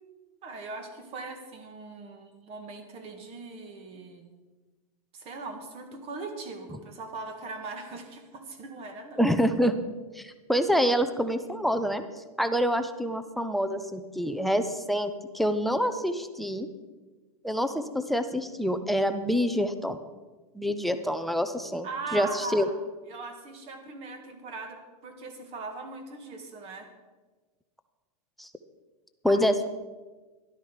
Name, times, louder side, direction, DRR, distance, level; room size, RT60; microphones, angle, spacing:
voice 1, 0.4-4.3 5.1-9.2 10.8-10.9 21.8-22.8 23.1-26.9 29.3-29.4, right 3 dB, 30° right, 6 dB, 1.9 m, -40 dB
voice 2, 9.2-9.7 10.1-12.0 12.4-16.7 17.4-20.0 20.5-21.9 22.1-22.7 28.4-28.5 29.2-29.7, equal, ahead, 10 dB, 0.5 m, -26 dB
13.0 x 12.0 x 5.0 m, 1.3 s
supercardioid pair, 150°, 20 cm